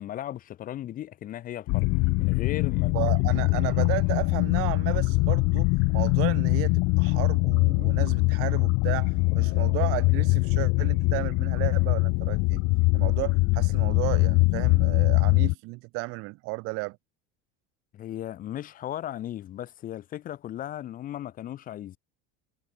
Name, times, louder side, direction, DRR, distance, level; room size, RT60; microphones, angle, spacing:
voice 1, 0.0-3.6 17.9-22.0, left 12 dB, 30° left, 1.5 m, -37 dB
sound 1, 1.7-15.5, left 27 dB, 45° left, 0.5 m, -23 dB
voice 2, 2.9-12.6 12.9-17.0, right 26 dB, 50° right, 2.3 m, -33 dB
cardioid pair, 170°, 29 cm